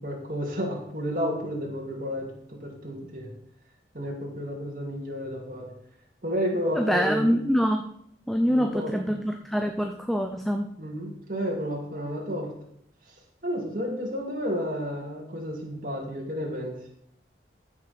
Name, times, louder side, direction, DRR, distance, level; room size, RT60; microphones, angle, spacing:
voice 1, 0.0-3.3 3.9-5.7 6.2-7.3 8.5-9.2 10.8-12.5 13.4-16.8, equal, 50° right, -1 dB, 2.5 m, -31 dB
voice 2, 6.7-7.9 8.3-10.7, equal, ahead, 5 dB, 0.5 m, -25 dB
14.5 x 6.1 x 4.3 m, 0.70 s
head